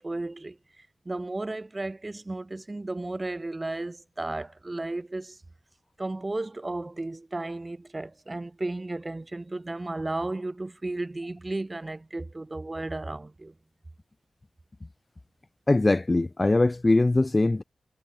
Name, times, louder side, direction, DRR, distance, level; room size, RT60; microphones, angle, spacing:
voice 1, 0.0-5.4 6.0-13.5, right 2 dB, 25° right, 5.1 m, -34 dB
voice 2, 15.7-17.6, left 2 dB, 25° left, 1.1 m, -21 dB
wide cardioid pair, 100°, 0 cm